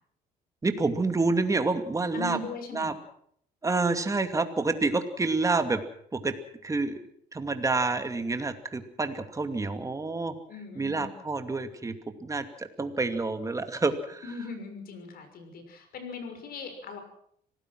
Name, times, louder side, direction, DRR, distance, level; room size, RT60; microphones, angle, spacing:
voice 1, 0.6-2.4 2.7-2.9 3.6-5.8 6.1-6.4 6.6-7.0 7.3-10.3 10.7-11.9 12.2-14.3, right 3 dB, 20° right, 7 dB, 2.5 m, -28 dB
voice 2, 2.1-2.9 10.5-11.1 14.2-17.0, left 4 dB, 60° left, 7 dB, 6.2 m, -39 dB
25.5 x 18.0 x 6.2 m, 0.65 s
cardioid pair, 110°, 17 cm